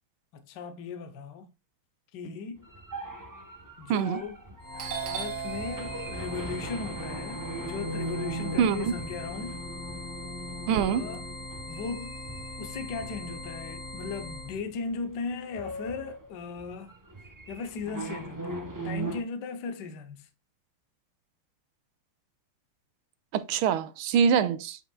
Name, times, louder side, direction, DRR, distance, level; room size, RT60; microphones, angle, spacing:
voice 1, 0.3-1.5 2.1-2.6 3.8-4.4 5.0-9.6 10.7-11.2 11.7-12.2 12.6-16.9 17.5-20.3, left 4 dB, 60° left, 1.5 m, -37 dB
sound 1, 2.6-13.3 13.7-13.9 14.4-14.8 15.1-19.2, right 1 dB, 15° right, 0.6 m, -39 dB
voice 2, 3.9-4.2 8.6-8.9 10.7-11.1 23.3-24.8, right 7 dB, 85° right, 1.5 m, -24 dB
Doorbell, 4.2-4.5 4.8-8.9 9.3-10.8, right 8 dB, 60° right, 1.4 m, -39 dB
sound 2, 4.6-14.6, left 2 dB, 45° left, 2.3 m, -41 dB
8.4 x 5.6 x 2.3 m
omnidirectional pair, 2.3 m